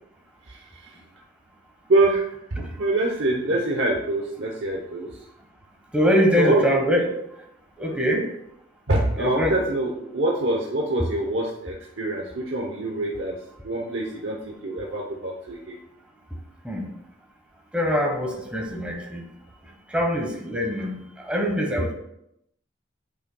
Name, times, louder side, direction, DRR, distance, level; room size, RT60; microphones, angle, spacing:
voice 1, 0.5-1.0 1.9-5.2 6.4-6.6 8.9-13.4 13.6-15.8, right 2 dB, 70° right, -1 dB, 0.9 m, -25 dB
voice 2, 5.9-7.1 7.8-8.2 9.1-9.5 16.6-16.8 17.7-19.2 19.9-21.0 21.3-21.9, equal, 5° right, 0 dB, 1.3 m, -23 dB
9.7 x 5.5 x 2.3 m, 0.80 s
head